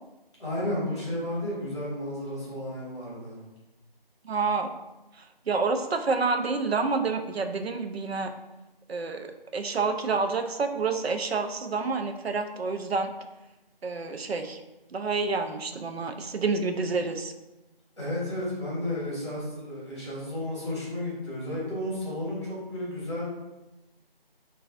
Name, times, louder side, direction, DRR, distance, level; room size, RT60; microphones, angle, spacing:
voice 1, 0.4-3.4 18.0-23.3, left 1 dB, 30° left, -8 dB, 1.2 m, -32 dB
voice 2, 4.2-4.7 5.2-8.3 8.9-13.1 13.8-14.6 14.9-17.3, right 4 dB, 85° right, 6 dB, 0.5 m, -28 dB
4.2 x 2.3 x 2.4 m, 1.0 s
figure-of-eight pair, 170°, 30 cm